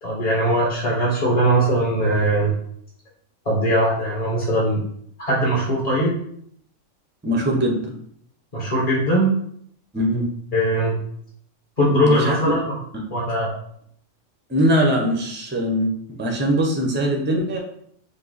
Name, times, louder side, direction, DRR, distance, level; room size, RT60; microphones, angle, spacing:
voice 1, 0.0-2.5 3.4-4.8 5.2-6.2 8.5-9.3 10.5-10.9 11.8-12.6 13.1-13.5, right 1 dB, 35° left, -5 dB, 0.9 m, -20 dB
voice 2, 7.2-7.9 9.9-10.2 12.0-12.4 12.9-13.0 14.5-17.6, equal, 15° right, 0 dB, 0.4 m, -21 dB
5.3 x 2.0 x 3.9 m, 0.67 s
omnidirectional pair, 1.4 m